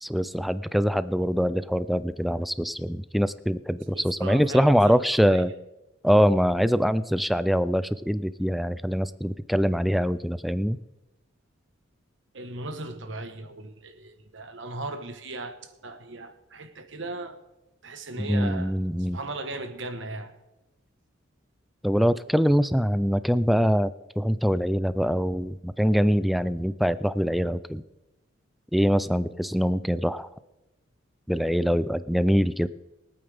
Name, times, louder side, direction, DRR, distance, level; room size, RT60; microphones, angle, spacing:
voice 1, 0.0-5.5 6.0-10.8 18.2-19.2 21.8-23.9 24.2-27.8 28.7-30.3 31.3-32.7, equal, ahead, 0.3 m, -23 dB
voice 2, 3.9-4.9 5.3-5.4 12.3-17.4 17.8-18.7 19.1-20.3, right 2 dB, 65° right, 1.2 m, -37 dB
23.0 x 8.9 x 3.5 m
head